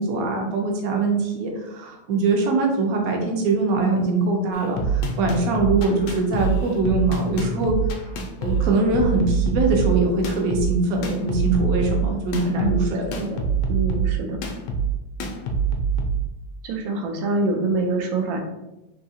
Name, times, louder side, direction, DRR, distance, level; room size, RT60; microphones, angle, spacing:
voice 1, 0.0-7.8 8.4-13.1, right 3 dB, 65° right, 1 dB, 0.9 m, -22 dB
sound 1, 4.5-16.3, right 5 dB, 75° left, 1.1 m, -25 dB
voice 2, 12.5-13.4 13.7-14.4 16.6-18.4, right 2 dB, 85° right, 3 dB, 1.3 m, -26 dB
3.7 x 2.7 x 2.7 m, 0.94 s
omnidirectional pair, 2.1 m